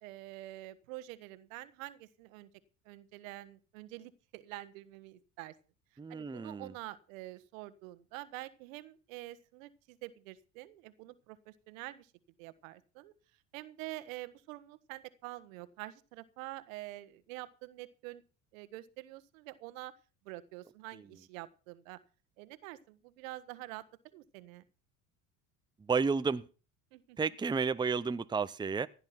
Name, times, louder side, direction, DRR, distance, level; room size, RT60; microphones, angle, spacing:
voice 1, 0.0-2.5 2.8-5.5 6.1-12.1 12.4-13.1 13.5-18.2 18.5-19.9 20.2-22.0 22.4-23.8 24.1-24.6 26.9-27.2, right 17 dB, 80° right, 1.3 m, -47 dB
voice 2, 6.0-6.7 25.9-26.4 27.2-28.9, right 5 dB, 10° right, 0.7 m, -31 dB
16.5 x 9.6 x 5.9 m
hypercardioid pair, 75°, 40 cm